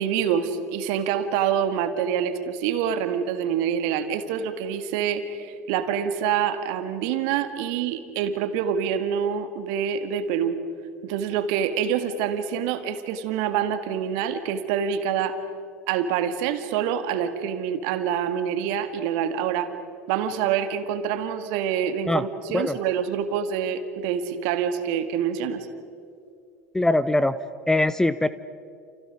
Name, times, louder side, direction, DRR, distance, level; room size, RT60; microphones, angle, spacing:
voice 1, 0.0-10.6 11.0-15.4 15.9-19.7 20.1-25.7, right 8 dB, 55° right, 9 dB, 2.0 m, -26 dB
voice 2, 26.7-27.4 27.7-28.3, left 2 dB, 5° left, 15 dB, 0.7 m, -21 dB
29.5 x 29.5 x 5.1 m, 2.5 s
figure-of-eight pair, 75°, 8 cm